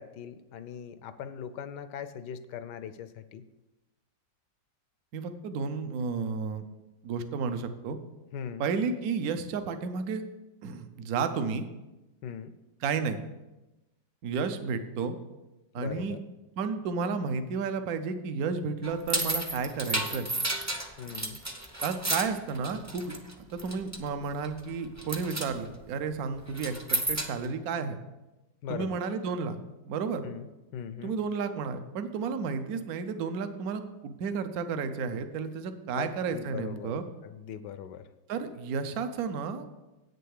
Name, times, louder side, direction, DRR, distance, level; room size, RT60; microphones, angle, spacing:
voice 1, 0.0-3.4 8.3-8.7 12.2-12.5 15.8-16.2 21.0-21.4 28.6-29.2 30.2-31.2 35.9-36.9 37.2-38.0, left 8 dB, 75° left, 12 dB, 1.2 m, -40 dB
voice 2, 5.1-6.6 7.0-8.0 8.6-10.2 10.6-11.7 12.8-13.2 14.2-15.2 15.7-16.2 16.6-20.3 21.8-26.7 27.1-28.0 28.7-29.6 29.8-30.2 31.0-37.0 38.3-39.7, right 5 dB, 60° right, 9 dB, 1.1 m, -32 dB
sound 1, 18.8-23.3 23.6-24.1 24.4-24.7 25.0-25.5 26.5-27.4, right 1 dB, 15° right, 0.6 m, -32 dB
8.6 x 6.8 x 6.5 m, 1.0 s
omnidirectional pair, 1.9 m